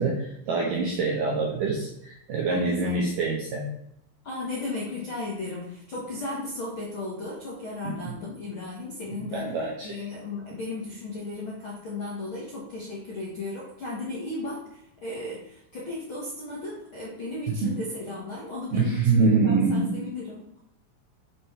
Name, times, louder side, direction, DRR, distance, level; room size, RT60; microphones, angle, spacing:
voice 1, 0.0-3.7 7.8-8.1 9.2-10.0 17.5-17.7 18.7-20.0, right 4 dB, 75° right, -1 dB, 2.0 m, -25 dB
voice 2, 2.5-3.0 4.2-9.5 9.8-20.6, left 2 dB, 60° left, -5 dB, 1.3 m, -35 dB
7.4 x 5.9 x 4.7 m, 0.77 s
omnidirectional pair, 5.2 m